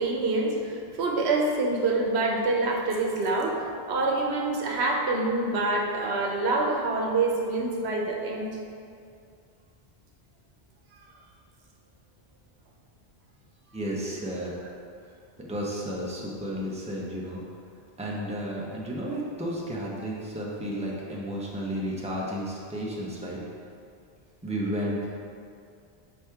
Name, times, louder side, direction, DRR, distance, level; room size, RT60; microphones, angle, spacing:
voice 1, 0.0-8.6, right 2 dB, 80° right, 0 dB, 1.0 m, -26 dB
voice 2, 13.7-14.5 15.4-17.4 18.0-23.4 24.4-25.1, equal, 5° right, -4 dB, 0.7 m, -32 dB
6.0 x 4.8 x 3.5 m, 2.4 s
omnidirectional pair, 1.1 m